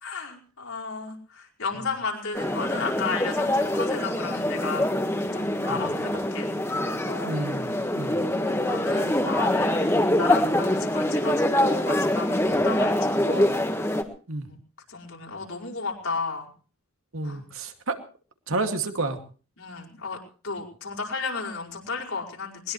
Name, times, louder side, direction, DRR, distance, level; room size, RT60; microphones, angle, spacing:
voice 1, 0.0-4.9 5.3-6.5 6.9-7.4 8.2-9.9 10.2-13.6 14.5-14.6 14.9-16.5 17.2-17.4 19.6-20.2 20.4-22.7, left 4 dB, 75° left, -1 dB, 5.2 m, -33 dB
sound 1, 2.3-14.0, left 1 dB, 10° left, 1.6 m, -24 dB
voice 2, 7.2-8.2 14.3-14.5 17.1-18.0 18.5-19.2, right 2 dB, 70° right, 5 dB, 2.4 m, -30 dB
21.0 x 21.0 x 3.2 m, 0.39 s
head